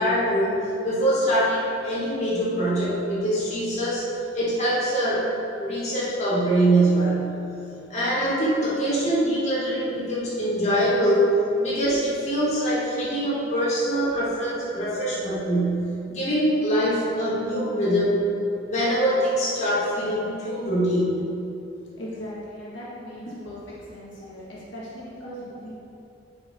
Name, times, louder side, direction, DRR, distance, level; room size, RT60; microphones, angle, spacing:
voice 1, 0.0-4.1 4.3-5.3 5.6-7.3 7.9-11.3 11.6-18.2 18.7-21.2, right 1 dB, 35° left, -8 dB, 1.7 m, -23 dB
voice 2, 22.0-23.6 23.9-25.7, equal, 65° left, -8 dB, 1.7 m, -38 dB
10.0 x 4.3 x 3.6 m, 2.7 s
head